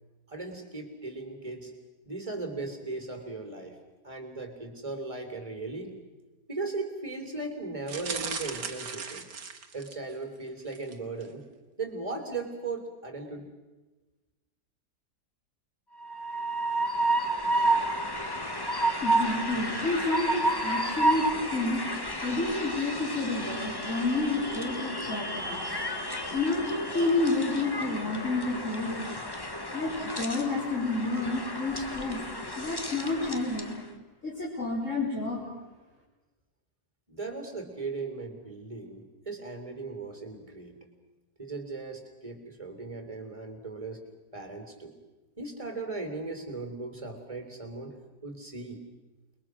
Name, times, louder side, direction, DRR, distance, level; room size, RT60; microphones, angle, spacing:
voice 1, 0.3-1.7 2.0-3.8 4.0-6.0 6.5-9.3 9.7-11.4 11.8-13.5 37.1-40.8 41.4-44.0 44.3-44.9 45.4-48.0 48.2-48.8, right 3 dB, 20° right, 6 dB, 3.5 m, -37 dB
sound 1, 7.9-10.1 10.7-10.9 11.2-11.3, right 5 dB, 80° right, 2.3 m, -37 dB
Train, 16.0-33.8, right 1 dB, 15° left, 1.4 m, -31 dB
voice 2, 19.0-21.9 22.2-25.6 26.3-29.0 29.7-32.2 32.6-33.8 34.2-35.4, left 2 dB, 45° left, -7 dB, 4.9 m, -30 dB
29.0 x 22.0 x 6.2 m, 1.2 s
omnidirectional pair, 1.8 m